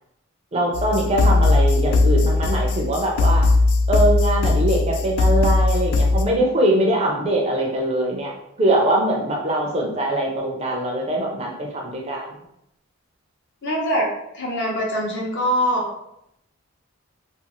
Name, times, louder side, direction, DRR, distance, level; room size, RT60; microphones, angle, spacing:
voice 1, 0.5-3.4 3.9-8.3 8.6-12.3, right 1 dB, 25° right, -1 dB, 0.4 m, -22 dB
sound 1, 0.7-6.2, left 3 dB, 85° left, 0.3 m, -18 dB
voice 2, 13.6-14.1 14.3-15.9, equal, 50° left, -3 dB, 0.7 m, -23 dB
2.5 x 2.3 x 2.9 m, 0.79 s
head